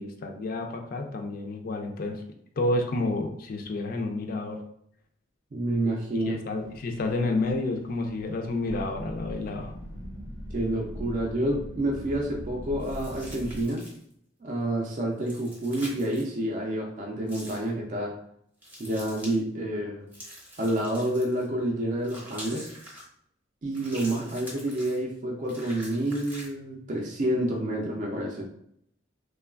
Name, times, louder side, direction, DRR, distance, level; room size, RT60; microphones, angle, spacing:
voice 1, 0.0-2.2 2.6-4.6 6.3-9.7, left 2 dB, 45° left, 4 dB, 0.4 m, -30 dB
voice 2, 5.5-6.4 10.5-13.8 14.4-18.1 18.8-20.1 20.6-22.7 23.6-28.4, right 1 dB, 40° right, -2 dB, 0.4 m, -29 dB
sound 1, 6.6-13.7, equal, 90° left, 0.6 m, -41 dB
sound 2, 12.8-14.1 15.2-16.3 17.3-17.7 18.6-19.4 20.1-21.5 22.0-23.0 23.7-25.0 25.5-26.5, equal, 10° right, 0.7 m, -45 dB
3.1 x 2.2 x 2.3 m, 0.71 s
head